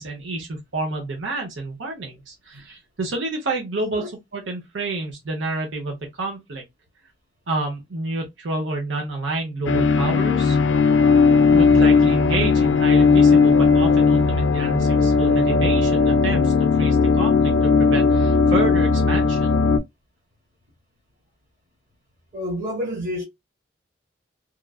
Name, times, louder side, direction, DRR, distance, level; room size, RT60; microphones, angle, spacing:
voice 1, 0.0-4.0 4.3-6.6 7.5-10.6 11.5-16.5 16.8-19.5, right 2 dB, 85° right, 0.7 m, -29 dB
sound 1, 9.7-19.8, left 5 dB, 85° left, 0.3 m, -17 dB
voice 2, 22.3-23.2, equal, 40° right, 1.2 m, -29 dB
3.0 x 2.3 x 2.2 m
head